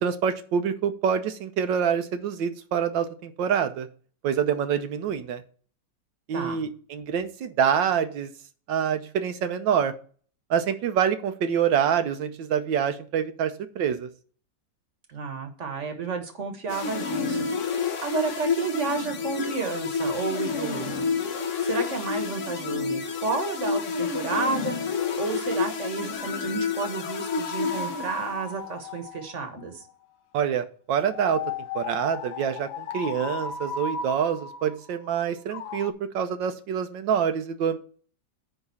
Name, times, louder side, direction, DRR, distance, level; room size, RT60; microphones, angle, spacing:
voice 1, 0.0-3.9 4.2-5.4 6.3-8.3 8.7-9.9 10.5-14.1 30.3-31.4 31.7-37.8, right 8 dB, 75° right, 10 dB, 1.4 m, -26 dB
voice 2, 6.3-6.7 15.1-17.7 18.0-21.0 21.6-24.8 25.2-29.8, right 4 dB, 45° right, 7 dB, 1.4 m, -31 dB
sound 1, 16.7-28.6, left 5 dB, 50° left, 1.0 m, -29 dB
sound 2, 26.1-29.9 30.9-35.9, left 5 dB, 85° left, 1.5 m, -36 dB
9.6 x 3.6 x 6.9 m, 0.43 s
omnidirectional pair, 2.1 m